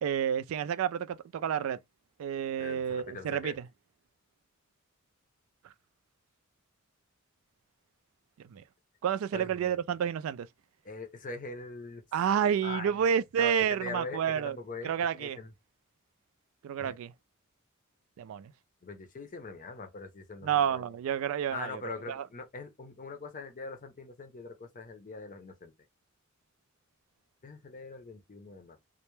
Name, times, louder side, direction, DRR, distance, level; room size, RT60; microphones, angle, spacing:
voice 1, 0.0-1.8 2.2-3.5 8.5-8.6 9.0-10.5 12.1-14.6 14.8-15.4 16.6-17.1 18.2-18.5 20.4-21.7 22.1-22.2, right 8 dB, 85° right, 0.3 m, -29 dB
voice 2, 2.6-3.6 9.3-9.8 10.8-12.0 12.6-15.5 16.8-17.0 18.8-20.9 21.5-25.7 27.4-28.8, left 3 dB, 40° left, 0.5 m, -42 dB
2.1 x 2.0 x 3.0 m
head